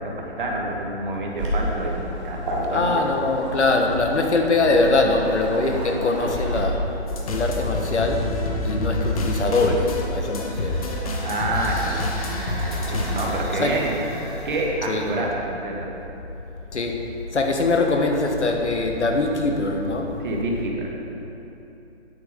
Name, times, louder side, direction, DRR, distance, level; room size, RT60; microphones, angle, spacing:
voice 1, 0.0-3.0 11.2-12.1 12.4-14.0 14.4-15.9 20.2-20.9, right 2 dB, 50° right, -1 dB, 1.7 m, -28 dB
Waves surf, 1.4-6.6, right 1 dB, 30° right, 1.5 m, -31 dB
voice 2, 2.7-6.9 7.3-8.4 8.6-10.8 12.9-13.2 13.5-13.8 14.9-15.3 16.7-20.1, left 2 dB, 90° left, 3 dB, 1.4 m, -22 dB
sound 1, 7.1-13.4, left 1 dB, 35° left, 1.0 m, -27 dB
sound 2, 10.0-15.2, right 1 dB, 10° right, 1.0 m, -39 dB
9.2 x 7.0 x 5.1 m, 2.9 s
hypercardioid pair, 155°, 33 cm